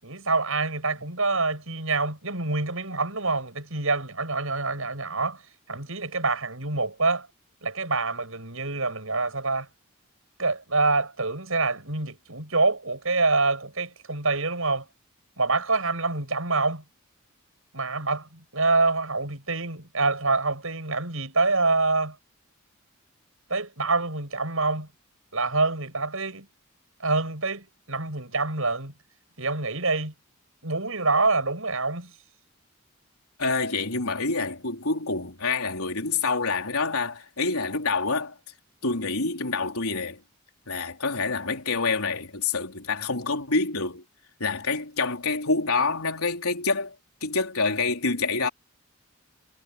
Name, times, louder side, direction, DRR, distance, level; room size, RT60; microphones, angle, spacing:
voice 1, 0.0-5.4 5.7-7.3 7.6-9.7 10.4-14.9 15.4-16.8 17.7-22.2 23.5-24.9 25.3-26.5 27.0-28.9 29.4-30.1 30.6-32.1, right 3 dB, 70° right, 7.7 m, -26 dB
voice 2, 33.4-38.3 38.8-40.2 40.7-44.0 44.4-46.9 47.2-48.5, left 4 dB, 85° left, 3.9 m, -27 dB
head